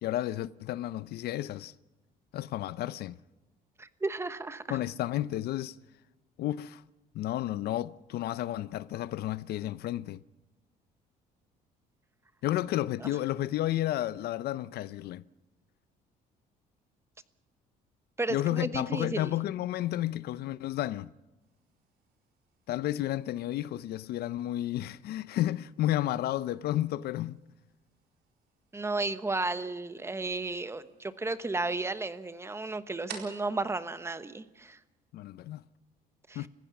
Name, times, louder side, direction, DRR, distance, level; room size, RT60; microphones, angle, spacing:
voice 1, 0.0-1.7 2.3-3.2 4.7-5.8 6.4-6.8 7.1-10.2 12.4-15.2 18.3-21.1 22.7-27.4 35.1-35.6 36.3-36.5, left 14 dB, 70° left, 0.6 m, -32 dB
voice 2, 3.8-4.8 18.2-19.3 28.7-34.8 36.3-36.5, right 3 dB, 15° right, 1.1 m, -33 dB
sound 1, 21.4-35.0, right 7 dB, 70° right, 4.2 m, -55 dB
29.5 x 15.5 x 5.9 m
cardioid pair, 110°, 17 cm